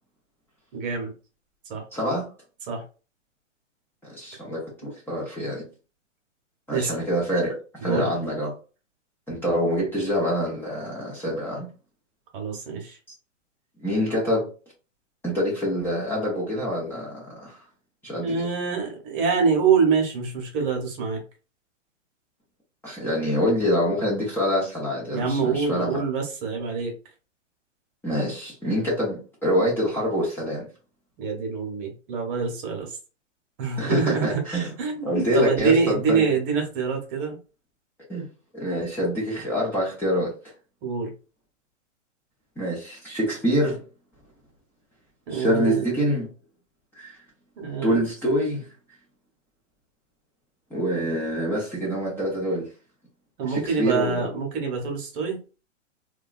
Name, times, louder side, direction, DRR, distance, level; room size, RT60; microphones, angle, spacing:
voice 1, 0.7-1.1 1.7-1.8 2.7-2.8 4.8-4.9 6.7-7.0 7.8-8.1 12.3-13.0 18.2-21.2 25.1-26.9 31.2-33.0 33.6-34.4 34.8-37.4 40.8-41.1 45.3-45.9 47.6-48.0 53.4-55.4, right 5 dB, 45° right, 1.0 m, -25 dB
voice 2, 1.9-2.2 4.0-5.6 6.7-8.5 9.3-11.7 13.8-14.5 15.2-17.6 18.0-18.5 22.8-26.0 28.0-30.7 33.8-34.7 35.0-36.4 38.1-38.2 38.5-40.3 42.6-43.8 45.3-46.3 46.9-47.2 47.8-48.7 50.7-52.7 53.4-54.3, equal, 5° left, 0.8 m, -26 dB
2.7 x 2.3 x 2.4 m
hypercardioid pair, 125°, 37 cm